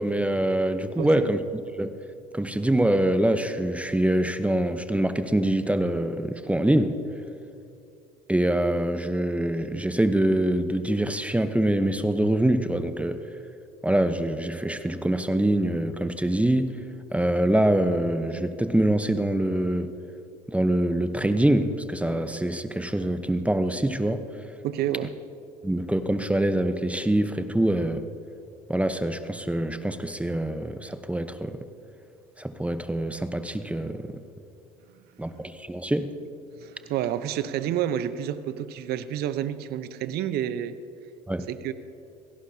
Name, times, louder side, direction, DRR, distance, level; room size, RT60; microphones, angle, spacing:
voice 1, 0.0-2.0 2.3-7.0 8.3-13.2 13.8-16.8 17.1-19.9 20.5-24.2 25.6-28.1 28.7-31.7 32.4-34.2 35.2-36.2 41.3-41.5, right 1 dB, 5° right, 0.9 m, -25 dB
voice 2, 1.0-1.3 24.6-25.1 36.6-40.8 41.5-41.7, right 11 dB, 55° right, 0.9 m, -29 dB
27.5 x 17.0 x 2.8 m
hypercardioid pair, 65°, 19 cm